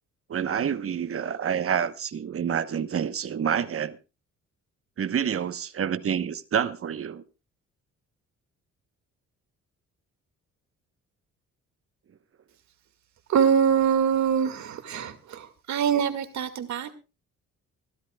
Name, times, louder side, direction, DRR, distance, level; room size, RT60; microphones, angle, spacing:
voice 1, 0.3-4.0 5.0-7.2, right 8 dB, 45° right, 1.1 m, -28 dB
voice 2, 13.3-16.9, right 8 dB, 65° right, 2.1 m, -24 dB
25.5 x 12.0 x 2.3 m
cardioid pair, 90°, 30 cm